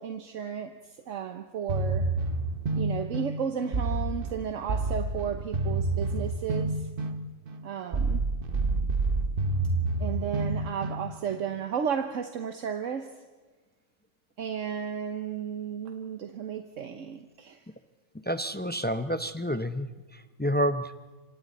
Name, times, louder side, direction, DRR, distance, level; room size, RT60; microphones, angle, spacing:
voice 1, 0.0-2.1 2.8-6.9 7.6-8.2 10.0-13.2 14.4-17.7, right 7 dB, 70° right, 7 dB, 1.3 m, -34 dB
sound 1, 1.7-11.5, right 3 dB, 45° right, 1.2 m, -29 dB
voice 2, 18.3-19.9 20.4-20.9, equal, 15° left, 10 dB, 0.3 m, -28 dB
26.5 x 25.5 x 4.1 m, 1.3 s
omnidirectional pair, 1.4 m